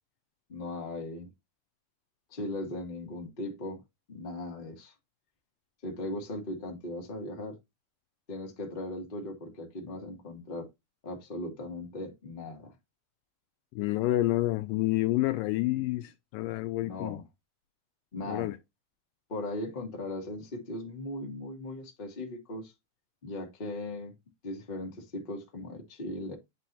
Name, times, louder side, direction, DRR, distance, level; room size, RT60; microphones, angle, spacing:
voice 1, 0.5-1.3 2.3-3.8 4.1-4.9 5.8-7.6 8.3-10.7 11.0-12.7 15.7-15.8 16.8-17.2 18.1-18.5 19.3-22.7 23.2-24.1 24.4-26.3, left 1 dB, 30° left, 0.9 m, -38 dB
voice 2, 13.8-17.2 18.3-18.6, left 16 dB, 80° left, 2.1 m, -29 dB
9.8 x 4.5 x 2.6 m
omnidirectional pair, 4.2 m